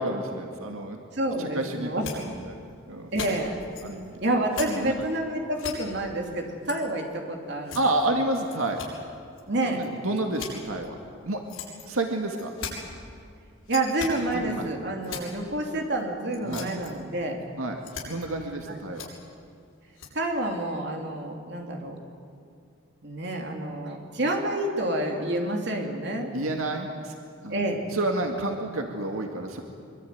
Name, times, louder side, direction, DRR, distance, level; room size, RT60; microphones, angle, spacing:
voice 1, 0.0-1.0 1.4-2.6 2.9-3.1 3.8-4.4 4.7-5.0 7.7-8.8 9.5-11.0 11.2-11.4 11.9-12.5 14.3-14.7 16.4-16.7 17.6-17.8 18.1-19.1 26.3-27.1 27.4-29.6, right 2 dB, 90° right, 3 dB, 2.1 m, -30 dB
voice 2, 1.1-2.0 3.1-3.6 4.2-7.8 9.5-9.8 13.7-17.4 20.1-22.0 23.0-26.3 27.5-27.9, right 1 dB, 55° right, 2 dB, 3.3 m, -28 dB
sound 1, 1.3-1.4 2.0-2.1 2.7-2.8 3.1-4.1 4.5-4.7 5.1-5.2 5.5-5.7 6.6-6.8 7.1-7.2 7.6-8.0 8.4-9.0 9.4-9.5 9.8-9.9 10.1-10.9 11.5-12.0 12.3-12.7 13.6-14.1 14.7-15.3 16.0-16.1 16.3-16.9 17.3-17.4 17.8-18.4 18.9-19.1 19.9-20.1, left 7 dB, 85° left, 7.3 m, -38 dB
24.0 x 24.0 x 9.5 m, 2.3 s
head